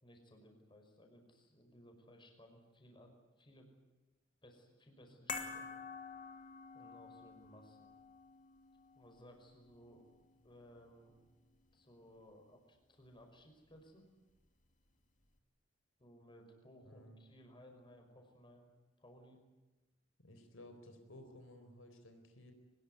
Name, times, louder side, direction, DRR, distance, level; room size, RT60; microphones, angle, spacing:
voice 1, 0.0-3.7 4.4-5.7 6.7-7.9 9.0-10.1 10.4-11.2 11.7-14.1 16.0-18.7 19.0-19.4, equal, 25° left, 4 dB, 5.4 m, -60 dB
sound 1, 5.3-11.7 12.0-12.1, left 5 dB, 40° left, 2.6 m, -49 dB
voice 2, 16.8-17.2 20.2-22.5, left 1 dB, 80° left, 6 dB, 4.3 m, -56 dB
23.5 x 20.5 x 9.6 m, 1.1 s
head